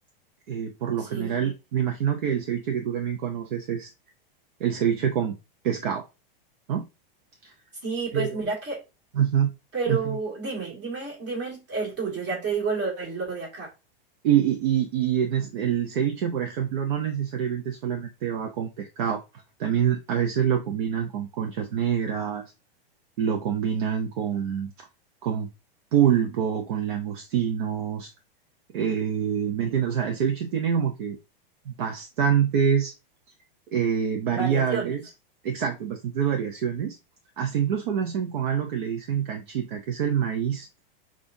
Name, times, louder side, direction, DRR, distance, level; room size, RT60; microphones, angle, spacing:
voice 1, 0.5-3.9 4.6-5.4 5.6-6.0 6.7-6.9 8.1-8.4 9.1-9.5 9.9-10.2 14.2-19.2 19.6-22.4 23.2-24.7 25.2-25.5 25.9-28.1 28.7-31.2 31.7-32.9 33.7-35.0 35.4-37.0 37.4-40.7, right 8 dB, 60° right, 0.7 m, -26 dB
voice 2, 1.0-1.4 7.8-8.8 9.7-13.7 23.6-23.8 34.3-34.9, right 4 dB, 35° right, 2.3 m, -30 dB
5.3 x 2.5 x 2.6 m
supercardioid pair, 170°, 29 cm